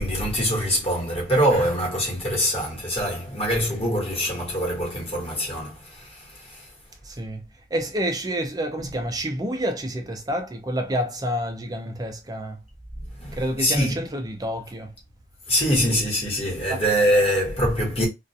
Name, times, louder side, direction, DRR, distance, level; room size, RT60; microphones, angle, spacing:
voice 1, 0.0-6.7 13.2-14.0 15.5-18.1, equal, 35° left, 1.2 m, -24 dB
voice 2, 7.0-7.4 7.7-12.6 13.4-14.9 16.7-16.8, equal, 20° right, 0.4 m, -28 dB
2.4 x 2.2 x 2.6 m
head